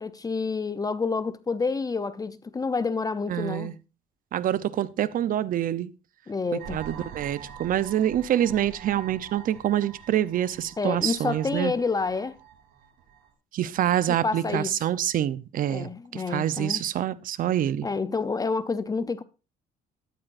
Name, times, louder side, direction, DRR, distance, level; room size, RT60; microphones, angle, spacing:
voice 1, 0.0-3.8 6.3-7.1 10.8-12.4 14.1-14.8 15.7-16.8 17.8-19.2, left 4 dB, 20° left, 0.6 m, -29 dB
voice 2, 3.3-3.7 4.3-5.9 6.5-11.7 13.5-17.9, right 11 dB, 55° right, 0.7 m, -26 dB
sound 1, 6.6-13.3, right 7 dB, 85° right, 3.4 m, -45 dB
13.5 x 12.0 x 2.6 m
cardioid pair, 110°, 17 cm